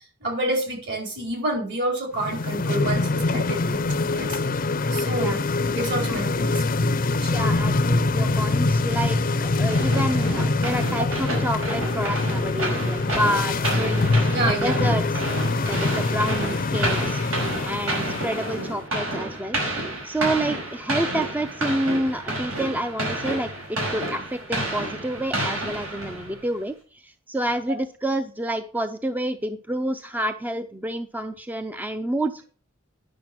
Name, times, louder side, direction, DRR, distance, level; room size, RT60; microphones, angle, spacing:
voice 1, 0.2-3.8 4.1-4.4 4.9-5.4 5.8-6.9 7.2-7.3 10.3-10.4 11.0-11.1 14.3-15.0 18.0-18.1, right 1 dB, 60° right, 1 dB, 4.5 m, -28 dB
sound 1, 2.1-18.8, left 3 dB, 45° left, 0.6 m, -24 dB
voice 2, 7.3-14.2 14.4-15.2 15.6-17.2 17.6-19.6 20.0-32.4, right 1 dB, 10° right, 9 dB, 0.5 m, -28 dB
sound 2, 9.7-26.5, right 1 dB, 85° right, 5.8 m, -30 dB
10.5 x 6.6 x 6.0 m, 0.40 s
head